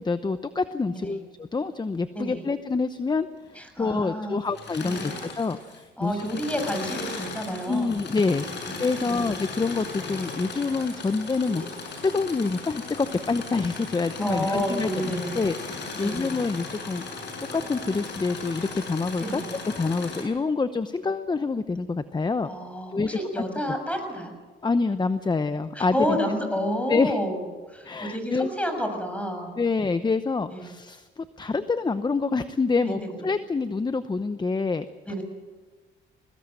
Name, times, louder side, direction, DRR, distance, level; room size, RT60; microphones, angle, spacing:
voice 1, 0.0-6.3 7.7-8.4 8.8-17.0 17.5-22.5 22.9-23.2 24.6-26.2 26.9-27.2 27.8-28.5 29.6-34.9, left 4 dB, 20° left, 12 dB, 0.8 m, -27 dB
voice 2, 3.6-4.4 4.8-5.2 6.0-8.0 8.7-9.2 11.6-11.7 14.2-15.4 16.0-16.3 19.2-19.5 22.4-24.3 25.7-27.4 27.7-29.6 30.5-30.6 32.8-33.2 35.1-35.2, equal, 5° left, 5 dB, 6.5 m, -30 dB
Engine / Mechanisms, 4.5-5.8 6.1-20.2, left 4 dB, 60° left, 6.6 m, -37 dB
22.5 x 19.0 x 7.9 m, 1.3 s
cardioid pair, 90°, 20 cm